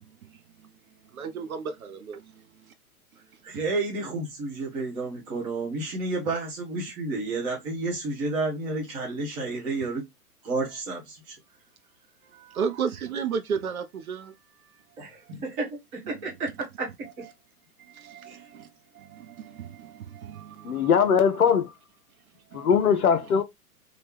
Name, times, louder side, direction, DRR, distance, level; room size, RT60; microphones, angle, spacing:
voice 1, 1.1-2.2 12.3-14.3 17.9-18.7 18.9-20.9 22.5-23.0, right 6 dB, 65° right, 0.7 m, -33 dB
voice 2, 3.4-10.0 10.4-11.4 15.0-17.2 18.2-18.4, right 3 dB, 10° right, 0.4 m, -31 dB
voice 3, 20.6-21.7 22.5-23.4, left 7 dB, 70° left, 0.6 m, -21 dB
3.1 x 2.4 x 3.3 m
figure-of-eight pair, 110°, 46 cm